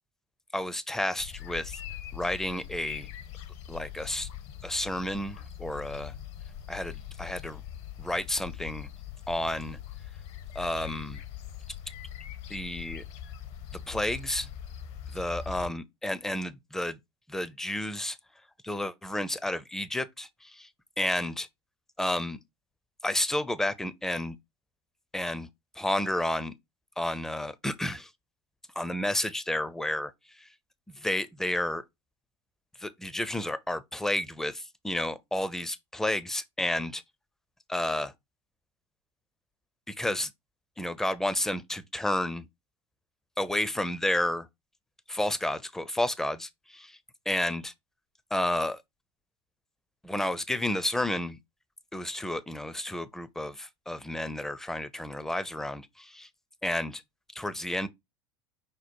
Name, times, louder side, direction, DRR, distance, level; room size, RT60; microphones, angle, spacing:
voice 1, 0.5-1.8 2.1-3.1 3.7-4.3 4.6-6.1 6.7-7.6 8.0-8.9 9.3-9.8 10.5-11.2 12.5-13.0 13.7-14.5 15.1-17.0 17.3-18.2 18.6-20.7 21.0-21.5 22.0-22.4 23.0-24.4 25.1-25.5 25.8-26.5 27.0-28.1 28.8-30.5 30.9-31.8 32.8-37.0 37.7-38.1 39.9-40.3 40.8-42.5 43.4-44.5 45.1-47.0 47.3-47.7 48.3-48.8 50.0-51.4 51.9-56.3 56.6-57.0 57.3-57.9, left 1 dB, 5° left, 0.4 m, -31 dB
sound 1, 1.2-15.7, left 9 dB, 50° left, 0.7 m, -42 dB
5.3 x 2.1 x 4.4 m
figure-of-eight pair, 80°, 15 cm